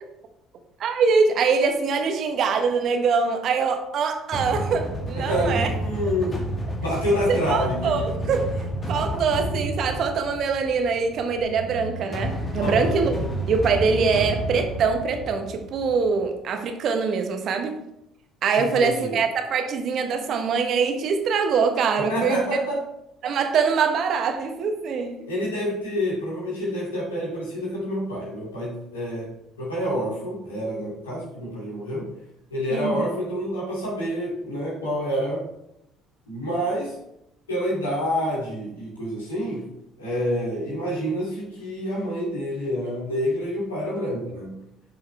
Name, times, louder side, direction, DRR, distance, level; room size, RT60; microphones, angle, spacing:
voice 1, 0.8-5.7 7.3-8.5 8.9-13.1 13.5-17.8 18.4-22.4 23.2-25.3 32.7-33.1, right 5 dB, 55° right, 5 dB, 1.1 m, -23 dB
sound 1, 4.3-16.2, right 1 dB, 35° left, 2.1 m, -30 dB
voice 2, 5.1-6.3 6.8-8.1 8.9-9.2 12.6-13.0 18.6-19.2 22.0-22.9 25.3-32.1 32.5-35.4 36.3-37.0 37.5-39.7 40.0-44.6, equal, 90° left, -7 dB, 2.6 m, -28 dB
9.2 x 5.5 x 3.3 m, 0.83 s
hypercardioid pair, 55°, 0 cm